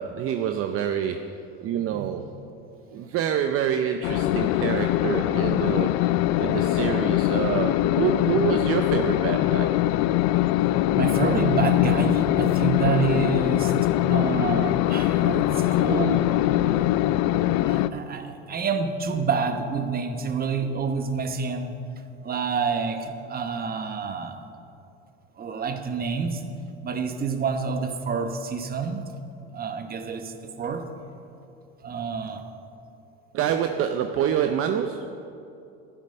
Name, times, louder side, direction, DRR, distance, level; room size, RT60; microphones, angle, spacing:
voice 1, 0.0-2.3 2.9-5.9 6.4-9.7 33.3-35.3, right 9 dB, 50° right, 7 dB, 0.6 m, -27 dB
voice 2, 1.8-2.1 2.9-3.0 10.9-13.7 14.1-16.3 17.6-21.7 22.2-24.4 25.4-26.4 26.8-29.0 29.5-30.9 31.8-32.4, right 5 dB, 30° right, 7 dB, 1.1 m, -28 dB
sound 1, 4.0-17.9, left 15 dB, 60° left, 0.4 m, -22 dB
12.0 x 10.0 x 5.6 m, 2.7 s
supercardioid pair, 105°, 30 cm